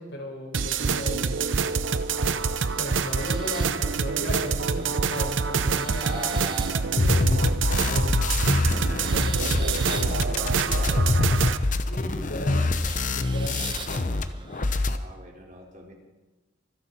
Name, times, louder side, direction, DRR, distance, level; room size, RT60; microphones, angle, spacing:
voice 1, 0.0-1.4 2.8-6.3 7.0-7.4 7.7-8.2 9.1-9.6 11.9-12.6 13.1-13.7, left 1 dB, 70° left, 0 dB, 4.4 m, -36 dB
sound 1, 0.5-11.6, right 5 dB, 90° right, 0.7 m, -26 dB
sound 2, 1.9-14.8, right 4 dB, 25° right, 1.1 m, -43 dB
voice 2, 6.0-7.5 9.3-11.3 14.9-15.9, right 1 dB, 45° right, -1 dB, 3.0 m, -39 dB
sound 3, 7.0-14.2 14.5-15.0, left 2 dB, 40° left, 0.7 m, -25 dB
25.5 x 10.0 x 4.3 m, 1.1 s
head